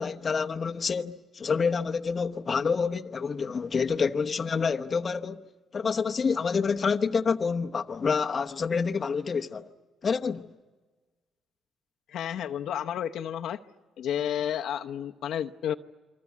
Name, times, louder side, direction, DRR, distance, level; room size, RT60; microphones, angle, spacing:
voice 1, 0.0-5.5 5.7-9.7 10.0-10.5, left 5 dB, 35° left, 0.9 m, -28 dB
voice 2, 12.1-13.6 14.0-15.7, left 9 dB, 65° left, 0.8 m, -31 dB
27.5 x 24.5 x 8.5 m
cardioid pair, 120°, 0 cm